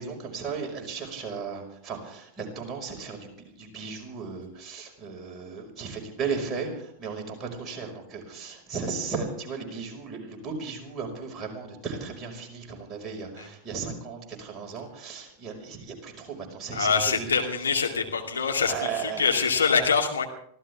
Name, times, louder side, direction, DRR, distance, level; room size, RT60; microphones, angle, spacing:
voice 1, 0.0-17.3 18.4-19.3, right 5 dB, 25° right, 1 dB, 5.4 m, -36 dB
voice 2, 16.7-20.3, left 5 dB, 75° left, 2 dB, 2.5 m, -25 dB
25.0 x 15.5 x 3.6 m, 0.70 s
figure-of-eight pair, 90°, 0 cm